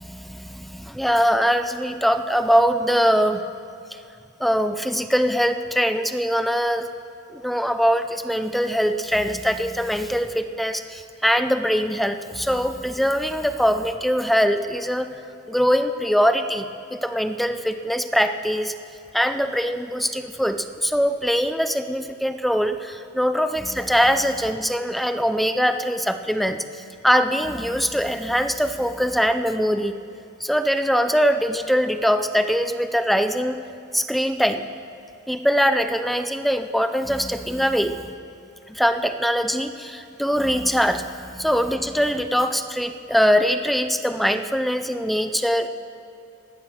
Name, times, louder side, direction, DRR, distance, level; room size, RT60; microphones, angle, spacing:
voice 1, 0.0-3.4 4.4-6.9 7.3-15.2 15.5-18.7 19.1-29.9 30.4-33.6 33.9-34.7 35.3-38.1 38.7-45.7, equal, ahead, 9 dB, 0.5 m, -22 dB
17.0 x 11.5 x 6.6 m, 2.6 s
head